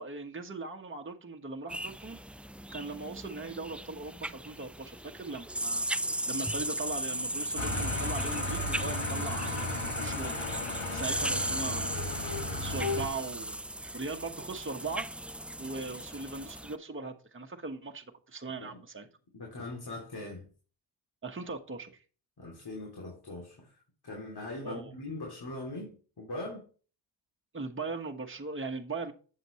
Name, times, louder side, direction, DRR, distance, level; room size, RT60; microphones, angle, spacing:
voice 1, 0.0-2.2 2.7-5.9 6.3-10.4 10.9-12.0 12.5-13.6 13.9-15.0 15.6-19.1 21.2-22.0 24.6-24.9 27.5-29.1, right 3 dB, 25° right, 3 dB, 1.4 m, -39 dB
sound 1, 1.7-16.8, right 1 dB, 5° right, 0.3 m, -36 dB
sound 2, 7.6-13.1, left 2 dB, 75° left, 2.1 m, -35 dB
voice 2, 19.3-20.5 22.4-23.7 24.0-26.7, left 2 dB, 55° left, 0 dB, 3.0 m, -41 dB
7.7 x 7.6 x 3.1 m, 0.37 s
cardioid pair, 50°, 47 cm